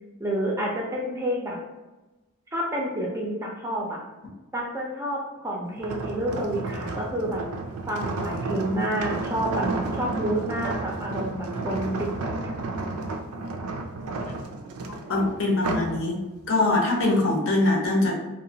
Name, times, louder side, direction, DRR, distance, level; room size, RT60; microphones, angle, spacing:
voice 1, 0.2-1.6 2.5-4.0 4.5-7.4 7.9-9.7 9.9-12.5, right 1 dB, 15° right, -2 dB, 0.4 m, -29 dB
sound 1, 5.8-16.0 16.4-16.7, right 2 dB, 85° right, 0.4 m, -32 dB
voice 2, 15.1-16.2 16.5-18.1, left 2 dB, 60° left, -1 dB, 0.7 m, -22 dB
2.8 x 2.1 x 2.7 m, 1.1 s
head